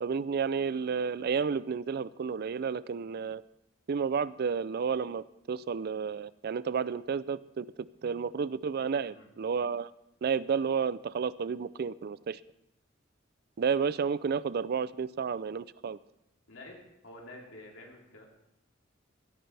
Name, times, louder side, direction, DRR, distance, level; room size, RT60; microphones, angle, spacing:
voice 1, 0.0-3.4 3.9-7.7 8.0-9.9 10.2-12.4 13.6-16.0, right 6 dB, 55° right, 18 dB, 0.4 m, -31 dB
voice 2, 16.5-18.3, left 1 dB, 85° left, -1 dB, 2.5 m, -49 dB
16.5 x 14.0 x 3.4 m, 0.82 s
head